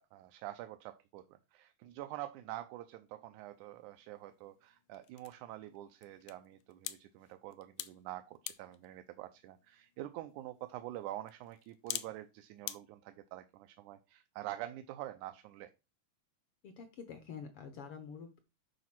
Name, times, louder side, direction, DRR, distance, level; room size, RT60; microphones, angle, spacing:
voice 1, 0.0-15.7, right 14 dB, 85° right, 9 dB, 2.1 m, -46 dB
sound 1, 3.4-12.8, left 14 dB, 90° left, 2.1 m, -49 dB
voice 2, 16.6-18.4, left 6 dB, 65° left, 8 dB, 1.5 m, -47 dB
9.3 x 4.1 x 6.0 m, 0.27 s
omnidirectional pair, 3.5 m